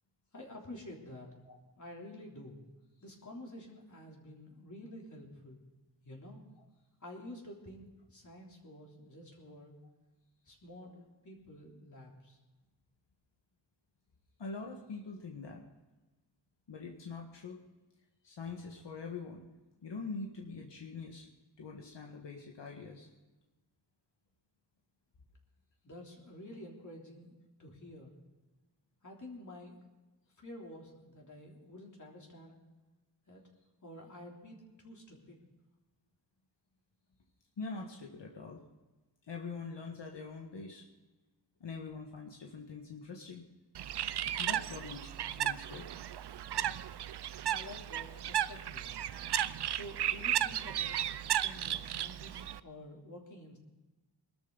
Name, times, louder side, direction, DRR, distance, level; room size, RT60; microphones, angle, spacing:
voice 1, 0.3-1.3 1.8-2.6 3.0-5.6 6.0-6.4 7.0-9.7 10.4-10.9 11.2-12.4 25.8-28.1 29.0-29.9 30.4-32.6 33.3-33.4 33.8-35.4 47.5-48.9 49.7-53.6, left 1 dB, 40° left, -1 dB, 3.4 m, -50 dB
voice 2, 14.4-15.7 16.7-17.6 18.2-19.4 19.8-21.3 21.6-23.1 37.6-38.6 39.3-40.8 41.6-43.4 44.4-45.9, left 4 dB, 70° left, 0 dB, 1.8 m, -44 dB
Bird, 43.7-52.6, right 11 dB, 65° right, 0.6 m, -35 dB
22.0 x 13.0 x 4.0 m, 1.1 s
wide cardioid pair, 120°, 44 cm